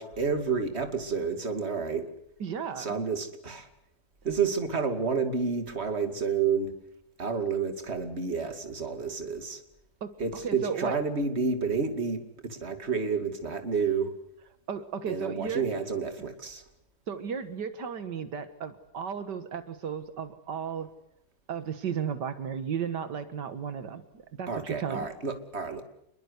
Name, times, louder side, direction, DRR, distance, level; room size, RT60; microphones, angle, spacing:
voice 1, 0.0-2.1 2.8-3.7 4.2-6.7 7.2-9.6 10.2-14.1 15.1-16.6 24.5-25.8, right 5 dB, 40° right, 7 dB, 2.7 m, -30 dB
voice 2, 2.4-3.0 4.2-4.3 10.0-11.0 14.7-15.6 17.1-20.9 21.5-25.1, right 7 dB, 80° right, 11 dB, 2.1 m, -34 dB
27.5 x 22.0 x 8.2 m, 0.76 s
omnidirectional pair, 1.8 m